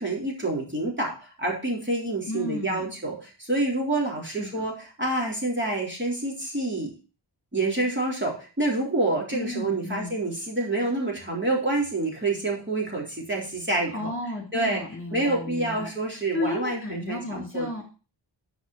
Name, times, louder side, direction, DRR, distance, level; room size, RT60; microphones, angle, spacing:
voice 1, 0.0-4.7 5.0-6.9 7.5-14.1 14.5-14.8 15.1-17.7, right 2 dB, 25° right, -2 dB, 3.8 m, -27 dB
voice 2, 2.3-2.9 4.4-4.7 9.3-10.2 13.9-17.8, left 2 dB, 30° left, 1 dB, 3.1 m, -34 dB
11.0 x 5.3 x 5.7 m, 0.34 s
wide cardioid pair, 100°, 43 cm